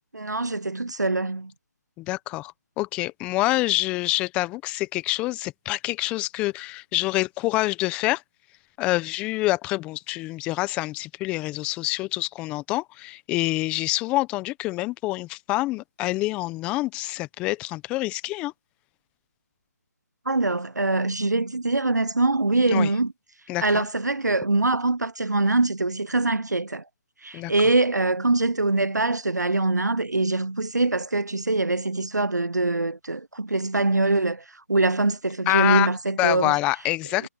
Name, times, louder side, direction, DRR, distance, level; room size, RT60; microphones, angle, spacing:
voice 1, 0.1-1.5 20.3-23.1 23.6-26.8 27.2-36.6 37.2-37.3, right 2 dB, 90° right, 1.0 m, -23 dB
voice 2, 2.0-2.5 2.8-8.2 8.8-18.5 22.7-22.9 23.5-23.9 27.3-27.5 35.5-35.9 36.2-37.3, left 19 dB, 10° left, 1.2 m, -26 dB
figure-of-eight pair, 155°, 9 cm